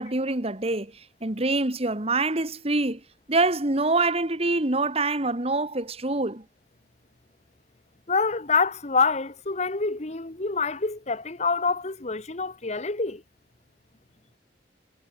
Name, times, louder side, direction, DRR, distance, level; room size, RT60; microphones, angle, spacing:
voice 1, 0.0-3.0 3.3-6.4, right 2 dB, 35° right, 1.9 m, -25 dB
voice 2, 8.1-13.2, left 4 dB, 40° left, 1.3 m, -26 dB
head